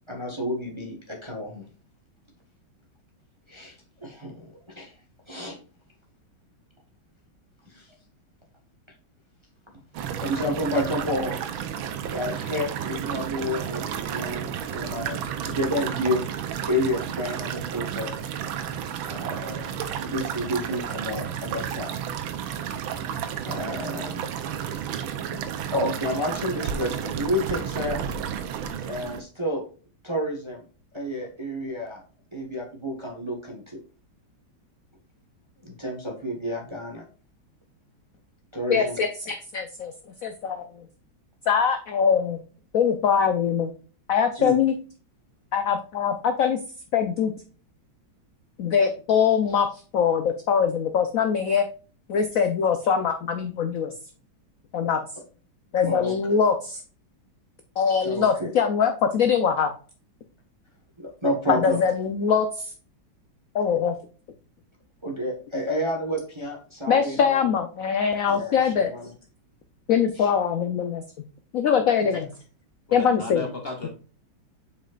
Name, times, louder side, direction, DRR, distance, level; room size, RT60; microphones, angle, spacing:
voice 1, 0.1-1.7 3.5-3.7 4.0-4.9 5.3-5.6 7.7-7.9 10.2-11.4 12.1-16.3 16.7-18.1 19.1-21.9 23.4-24.2 25.2-28.0 28.8-29.6 30.0-30.6 30.9-32.0 32.3-33.8 35.6-37.0 38.5-39.0 44.4-44.5 55.8-56.4 58.0-58.5 61.0-61.8 65.0-67.4 68.3-69.1 70.2-70.3 72.0-72.3, equal, 15° right, 0 dB, 1.1 m, -30 dB
sound 1, 9.9-29.2, right 8 dB, 80° right, 1.6 m, -32 dB
voice 2, 38.7-39.9 40.2-40.7 41.5-42.4 42.7-43.7 44.1-44.7 45.5-46.6 46.9-47.3 48.6-49.7 49.9-51.7 52.1-53.9 54.7-55.0 55.7-56.8 57.8-59.7 61.5-62.7 63.5-64.0 66.9-68.9 69.9-71.0 71.5-72.3 72.9-73.5, left 7 dB, 70° left, 7 dB, 0.8 m, -22 dB
voice 3, 72.9-73.9, left 2 dB, 35° left, 2 dB, 1.0 m, -34 dB
7.4 x 5.4 x 2.4 m, 0.37 s
omnidirectional pair, 2.2 m